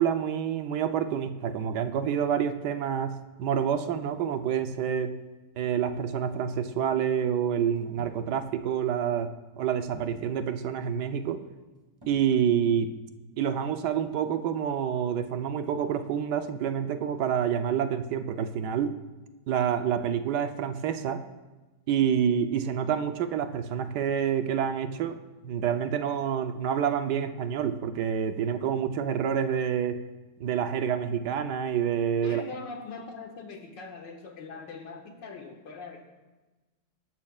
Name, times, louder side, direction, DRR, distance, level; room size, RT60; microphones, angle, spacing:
voice 1, 0.0-5.1 5.6-11.5 12.1-12.9 13.4-19.0 19.5-21.2 21.9-25.2 25.4-30.0 30.4-32.4, right 8 dB, 70° right, 8 dB, 1.3 m, -28 dB
sound 1, 7.8-8.3 9.8-10.4 12.0-12.4, equal, 15° right, 1.6 m, -49 dB
voice 2, 32.2-36.0, left 4 dB, 85° left, 2 dB, 2.2 m, -41 dB
22.0 x 12.0 x 2.4 m, 1.2 s
omnidirectional pair, 1.9 m